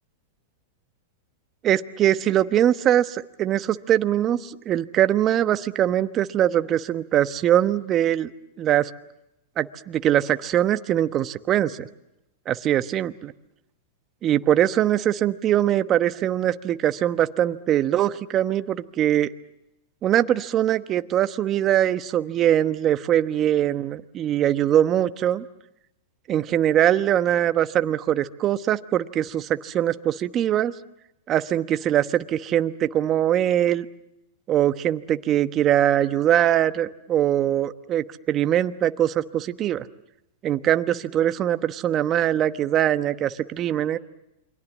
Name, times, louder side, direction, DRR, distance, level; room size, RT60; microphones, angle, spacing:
voice 1, 1.6-8.3 8.6-8.9 9.6-11.9 12.5-13.3 14.2-19.3 20.0-25.5 26.3-30.7 31.3-33.9 34.5-39.9 40.4-44.0, right 11 dB, 35° right, 11 dB, 1.1 m, -22 dB
28.5 x 23.5 x 7.4 m, 0.87 s
hypercardioid pair, 115°, 0 cm